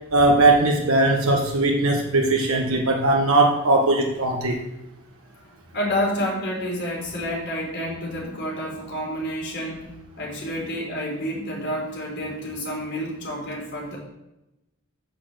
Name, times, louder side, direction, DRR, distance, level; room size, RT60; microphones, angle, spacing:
voice 1, 0.1-4.6, right 2 dB, 65° right, 1 dB, 1.1 m, -19 dB
voice 2, 5.7-9.9 10.2-14.0, equal, 55° left, -2 dB, 3.7 m, -29 dB
8.2 x 6.7 x 6.6 m, 0.94 s
head